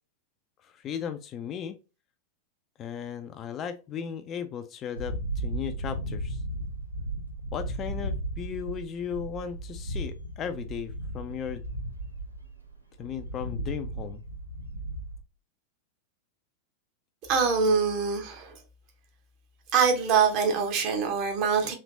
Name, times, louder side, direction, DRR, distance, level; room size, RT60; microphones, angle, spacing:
voice 1, 0.6-1.8 2.8-6.4 7.5-11.6 13.0-14.2, left 8 dB, 30° left, 0.3 m, -36 dB
sound 1, 5.0-15.2, right 1 dB, 90° right, 0.6 m, -35 dB
voice 2, 17.3-18.5 19.7-21.7, right 6 dB, 40° right, 0.9 m, -24 dB
3.2 x 2.8 x 2.5 m
figure-of-eight pair, 90°, 0 cm